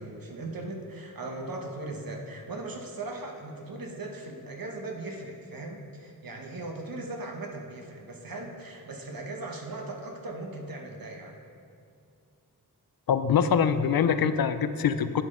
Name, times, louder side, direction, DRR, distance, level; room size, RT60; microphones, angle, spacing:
voice 1, 0.0-11.3, right 2 dB, 60° right, 2 dB, 1.1 m, -38 dB
voice 2, 13.1-15.2, left 7 dB, 65° left, 11 dB, 0.5 m, -24 dB
10.5 x 6.6 x 3.8 m, 2.4 s
wide cardioid pair, 70°, 38 cm